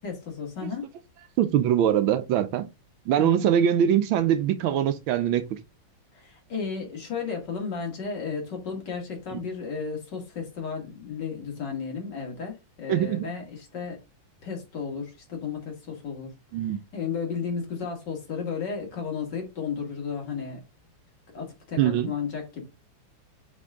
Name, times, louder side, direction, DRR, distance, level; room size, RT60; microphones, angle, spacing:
voice 1, 0.0-0.8 3.2-3.4 6.1-14.0 14.4-16.3 16.9-20.6 21.3-22.6, left 6 dB, 60° left, 2.5 m, -33 dB
voice 2, 1.4-2.6 3.1-5.4 9.3-9.4 12.9-13.2 16.5-16.8 21.8-22.1, right 10 dB, 85° right, 1.5 m, -22 dB
7.6 x 3.6 x 3.6 m
omnidirectional pair, 2.2 m